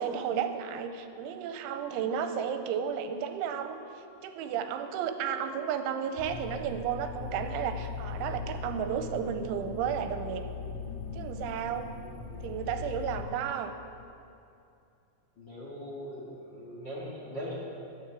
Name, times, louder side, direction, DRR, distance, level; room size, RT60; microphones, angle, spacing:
voice 1, 0.0-3.8 4.2-10.4 11.1-11.9 12.4-13.7, right 8 dB, 90° right, 8 dB, 3.1 m, -33 dB
sound 1, 6.2-13.3, left 5 dB, 80° left, 3.4 m, -39 dB
voice 2, 15.4-17.5, equal, 60° left, -6 dB, 1.1 m, -40 dB
12.5 x 9.8 x 7.2 m, 2.6 s
omnidirectional pair, 5.5 m